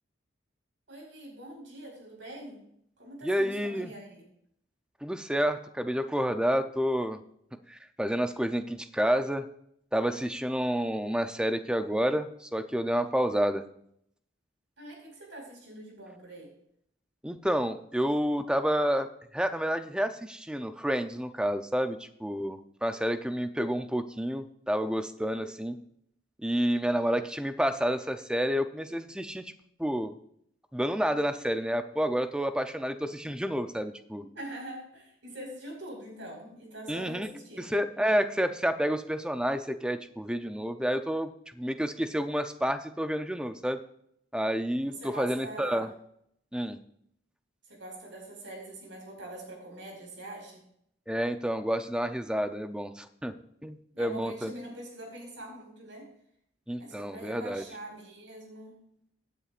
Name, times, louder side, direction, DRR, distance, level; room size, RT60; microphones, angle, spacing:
voice 1, 0.9-2.6 3.0-4.2 14.8-16.5 34.3-37.7 44.9-45.9 47.6-50.6 53.9-56.1 56.8-58.9, right 1 dB, 85° right, 0 dB, 5.1 m, -44 dB
voice 2, 3.2-3.9 5.0-7.2 7.7-9.5 9.9-13.6 17.2-19.1 19.3-25.8 26.4-29.5 29.8-30.1 30.7-34.2 36.9-37.3 37.6-43.8 44.3-45.9 46.5-46.8 51.1-53.3 53.6-54.5 56.7-57.6, equal, 5° right, 8 dB, 0.5 m, -29 dB
17.0 x 10.0 x 2.5 m, 0.70 s
head